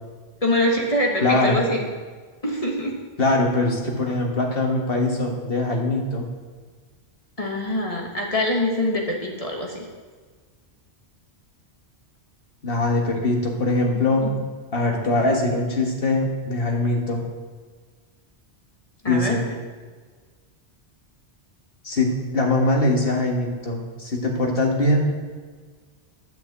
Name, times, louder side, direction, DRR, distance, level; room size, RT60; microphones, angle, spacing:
voice 1, 0.4-1.9 2.4-2.9 7.4-9.9 13.1-13.2 14.2-14.3 14.8-14.9 19.0-19.4, left 1 dB, 35° left, -1 dB, 1.5 m, -24 dB
voice 2, 1.2-1.6 3.2-6.3 12.6-14.3 14.7-17.2 19.1-19.4 21.8-25.1, left 2 dB, 60° left, 0 dB, 2.0 m, -22 dB
10.5 x 5.8 x 8.2 m, 1.5 s
omnidirectional pair, 1.1 m